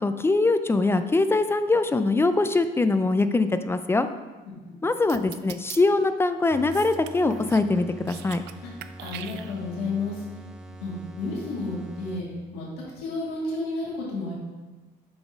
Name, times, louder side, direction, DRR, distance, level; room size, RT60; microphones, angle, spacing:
voice 1, 0.0-4.1 4.8-8.4, left 3 dB, 15° left, 10 dB, 0.4 m, -23 dB
voice 2, 4.5-4.8 9.0-10.2 10.7-12.3 12.5-12.7 13.0-14.3, left 3 dB, 80° left, -5 dB, 2.3 m, -31 dB
sound 1, 5.1-5.8 6.7-7.7 8.0-8.5 8.8-9.8, right 13 dB, 85° right, 0.4 m, -41 dB
sound 2, 6.5-12.6, right 1 dB, 5° right, 0.8 m, -44 dB
7.0 x 4.0 x 5.1 m, 1.2 s
cardioid pair, 110°, 17 cm